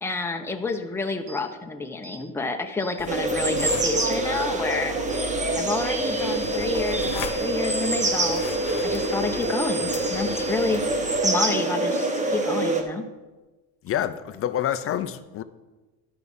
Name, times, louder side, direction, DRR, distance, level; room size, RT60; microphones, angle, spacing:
voice 1, 0.0-4.9 5.5-8.4 8.8-10.8 11.2-13.1, left 4 dB, 5° left, 4 dB, 0.8 m, -29 dB
sound 1, 1.3-1.4 2.0-2.2 2.8-3.0 3.6-3.7 4.3-4.5 5.1-5.3 5.7-10.7, right 1 dB, 70° right, 2.2 m, -40 dB
sound 2, 3.0-11.2, left 8 dB, 55° left, 1.2 m, -39 dB
sound 3, 3.1-12.8, right 2 dB, 20° right, 1.2 m, -25 dB
voice 2, 13.8-15.4, left 11 dB, 40° left, 12 dB, 0.5 m, -27 dB
12.0 x 4.8 x 5.5 m, 1.2 s
supercardioid pair, 110°, 37 cm